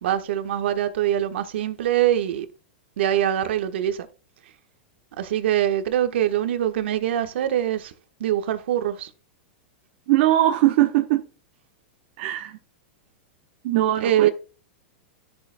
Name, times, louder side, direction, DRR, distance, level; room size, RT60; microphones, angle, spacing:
voice 1, 0.0-2.5 3.0-4.1 5.2-7.9 8.2-9.1 14.0-14.3, right 11 dB, 75° right, 1.2 m, -23 dB
voice 2, 10.1-11.3 12.2-12.6 13.6-14.3, right 14 dB, 55° right, 0.9 m, -20 dB
13.0 x 6.5 x 2.2 m
supercardioid pair, 140°, 6 cm